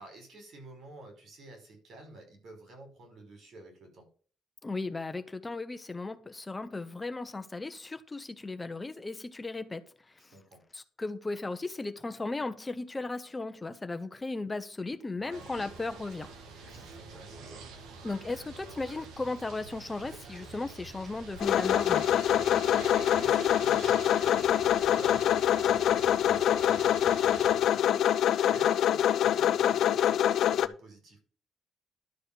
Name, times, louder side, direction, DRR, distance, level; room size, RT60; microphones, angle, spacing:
voice 1, 0.0-4.1 10.3-10.6 15.2-15.5 16.7-17.6 22.5-31.2, right 2 dB, 65° right, 5.5 m, -50 dB
voice 2, 4.6-10.3 10.7-16.8 18.0-22.0, left 3 dB, 20° left, 1.0 m, -36 dB
sound 1, 15.3-27.6, right 4 dB, 90° right, 1.9 m, -46 dB
sound 2, 21.4-30.7, left 10 dB, 75° left, 0.7 m, -25 dB
12.0 x 4.4 x 7.1 m
cardioid pair, 90°, 0 cm